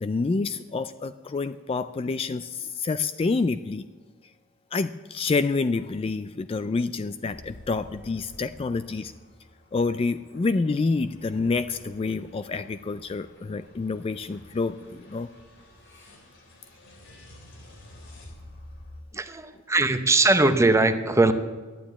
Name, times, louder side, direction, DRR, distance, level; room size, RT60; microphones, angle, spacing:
voice 1, 0.0-3.8 4.7-9.1 9.7-15.3, left 4 dB, 25° left, 12 dB, 0.3 m, -28 dB
sound 1, 7.3-19.0, left 1 dB, 60° left, 3.2 m, -50 dB
voice 2, 19.1-21.3, right 2 dB, 15° right, 9 dB, 0.7 m, -20 dB
11.5 x 9.3 x 8.6 m, 1.4 s
head